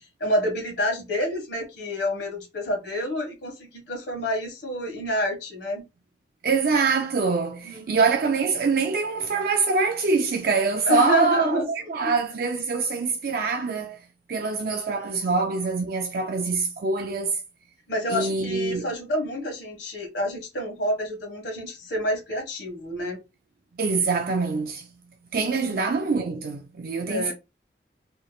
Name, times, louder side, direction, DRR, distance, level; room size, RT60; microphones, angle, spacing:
voice 1, 0.2-5.8 7.6-8.0 10.9-12.1 14.9-15.2 17.9-23.2 25.3-25.8 27.1-27.3, left 1 dB, 75° left, 1.7 m, -28 dB
voice 2, 6.4-14.0 14.3-17.4 18.1-18.9 23.8-24.9 25.3-27.3, right 4 dB, 55° right, 0.5 m, -24 dB
4.4 x 3.2 x 2.3 m
head